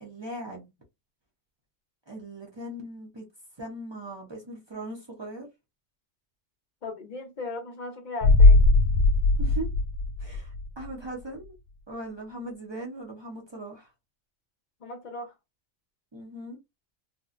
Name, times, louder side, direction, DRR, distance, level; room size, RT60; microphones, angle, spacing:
voice 1, 0.0-0.7 2.1-3.2 3.6-5.5 9.4-9.7 10.2-11.5 11.9-13.9 16.1-16.6, right 1 dB, 40° right, 0.3 m, -39 dB
voice 2, 6.8-8.6 14.8-15.3, left 3 dB, 45° left, 0.7 m, -37 dB
sound 1, 8.2-10.9 11.2-11.3, left 2 dB, 85° left, 1.0 m, -19 dB
2.9 x 2.0 x 2.4 m
omnidirectional pair, 1.4 m